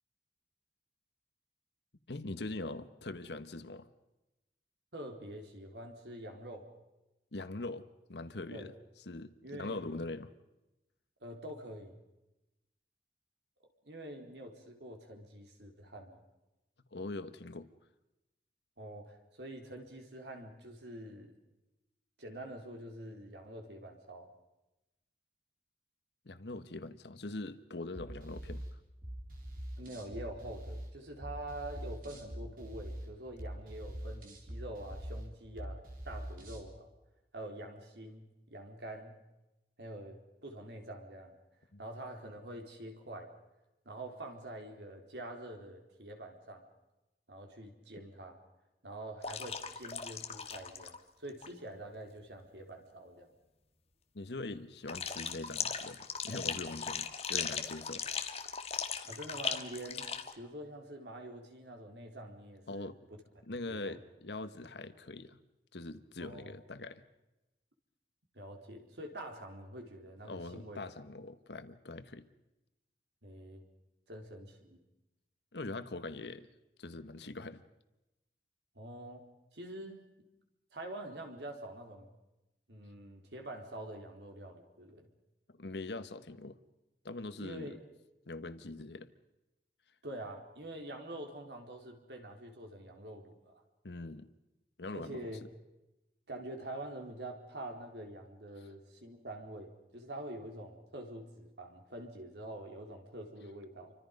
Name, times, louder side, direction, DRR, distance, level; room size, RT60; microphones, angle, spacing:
voice 1, 2.1-3.9 7.3-8.7 9.1-10.3 16.9-17.7 26.2-28.6 41.7-41.8 54.1-58.0 62.7-63.0 63.5-65.4 65.7-67.0 70.2-72.3 75.5-76.5 76.8-77.6 85.5-86.6 87.0-87.8 88.3-89.1 93.8-94.3 94.8-95.2, left 2 dB, 80° left, 11 dB, 1.2 m, -42 dB
voice 2, 4.9-6.7 8.5-8.7 9.4-10.0 11.2-12.0 13.9-16.2 18.8-21.4 22.2-24.3 29.8-35.8 36.0-36.9 37.3-39.2 39.8-41.4 41.8-43.3 43.9-46.7 47.3-48.4 48.8-53.3 59.0-60.1 60.3-62.9 63.7-64.0 66.2-66.6 68.3-70.8 73.2-73.6 74.1-74.8 78.8-79.2 79.5-80.1 80.7-82.1 82.7-85.1 87.4-87.8 90.0-93.6 94.9-95.4 96.3-103.9, right 1 dB, 80° right, 3 dB, 4.0 m, -46 dB
sound 1, 27.9-36.7, equal, 50° right, 4.3 m, -44 dB
sound 2, 49.2-51.0 51.3-51.5 54.9-60.3, left 6 dB, 35° left, 1.6 m, -38 dB
29.5 x 25.0 x 5.4 m, 0.98 s
head